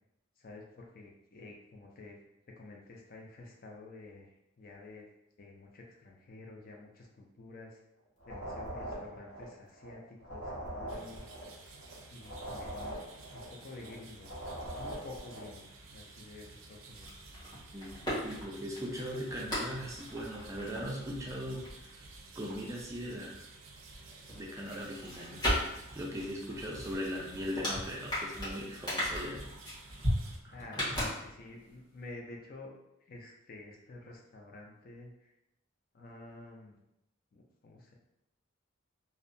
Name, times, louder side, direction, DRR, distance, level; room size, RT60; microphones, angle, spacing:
voice 1, 0.4-2.2 2.6-5.1 5.4-7.8 8.2-11.3 12.1-13.0 13.3-14.3 14.8-17.2 30.5-32.8 33.1-35.3 35.9-36.8 37.3-38.0, left 2 dB, 45° left, 0 dB, 0.4 m, -50 dB
sound 1, 8.2-9.9 10.2-13.9 14.2-15.6, right 1 dB, 70° left, 1.0 m, -42 dB
sound 2, 10.9-30.4, right 3 dB, 85° right, 0.4 m, -53 dB
sound 3, 16.9-23.4 23.7-31.7 32.0-32.1, equal, 20° left, 1.3 m, -38 dB
voice 2, 17.7-21.9 22.3-23.4 24.3-29.5 30.4-30.5, equal, 15° right, -3 dB, 0.4 m, -39 dB
2.7 x 2.1 x 2.5 m, 0.86 s
head